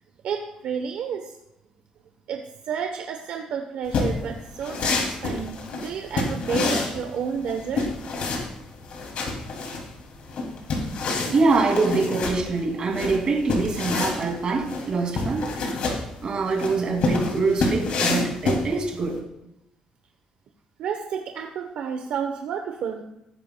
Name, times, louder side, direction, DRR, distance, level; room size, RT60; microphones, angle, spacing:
voice 1, 0.2-1.4 2.3-7.9 20.8-23.0, right 7 dB, 70° right, 4 dB, 0.9 m, -31 dB
sound 1, 3.9-19.1, left 3 dB, 65° left, 2.5 m, -28 dB
voice 2, 11.3-15.5 15.8-19.2, right 3 dB, 45° right, 2 dB, 2.4 m, -24 dB
18.0 x 9.9 x 2.2 m, 0.83 s
cardioid pair, 125°, 2 cm